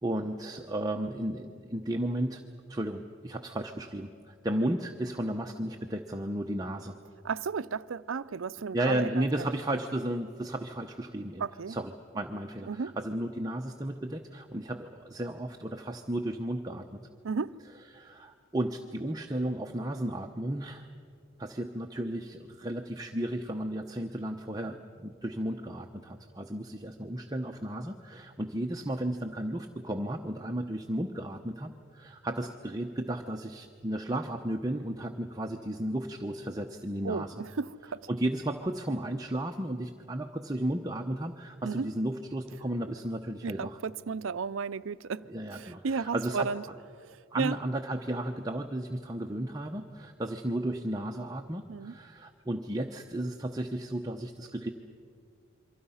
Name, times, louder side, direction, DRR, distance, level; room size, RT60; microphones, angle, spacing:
voice 1, 0.0-2.4 2.7-7.0 8.7-17.0 17.9-20.9 21.4-37.3 38.1-43.8 45.3-46.5 47.3-54.7, right 1 dB, 20° right, 0.8 m, -34 dB
voice 2, 7.2-9.2 11.4-11.8 12.3-12.4 12.7-13.0 17.2-17.6 37.0-38.1 41.6-41.9 43.4-46.6 46.9-47.6 51.7-51.9, right 5 dB, 80° right, 0.5 m, -34 dB
28.5 x 24.0 x 5.7 m
head